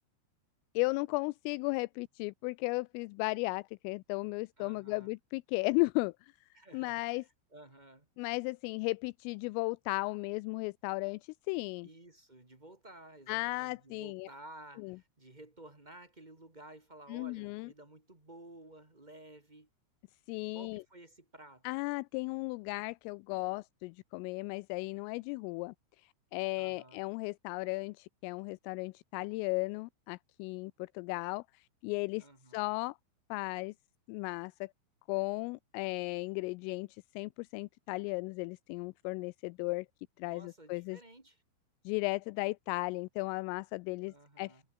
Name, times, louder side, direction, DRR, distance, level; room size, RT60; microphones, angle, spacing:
voice 1, 0.8-6.3 6.7-7.2 8.2-11.9 13.3-14.3 14.8-15.0 17.1-17.7 20.3-20.8 21.6-32.3 32.5-33.0 33.3-33.7 34.1-34.7 35.1-39.9 40.2-41.0 41.9-44.6, left 25 dB, 85° left, 3.1 m, -35 dB
voice 2, 4.6-5.1 6.5-8.1 11.8-19.7 20.5-21.7 26.5-27.0 32.2-32.8 40.2-41.4 44.1-44.6, right 1 dB, 25° right, 1.0 m, -54 dB
omnidirectional pair, 5.9 m